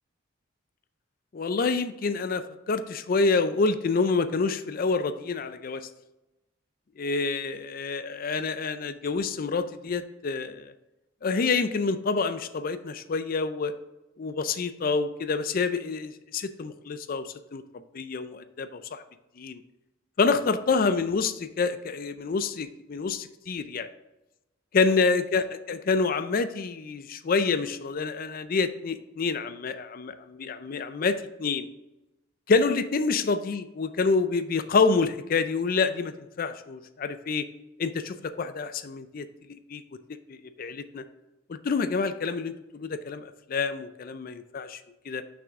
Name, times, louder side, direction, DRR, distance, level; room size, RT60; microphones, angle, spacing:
voice 1, 1.3-5.9 7.0-10.7 11.2-13.7 14.2-19.0 19.4-19.6 20.2-23.9 24.7-31.7 32.5-37.5 37.8-39.8 40.3-41.0 41.5-44.8 45.1-45.2, left 4 dB, 45° left, 12 dB, 0.4 m, -27 dB
6.1 x 6.0 x 3.5 m, 0.98 s
head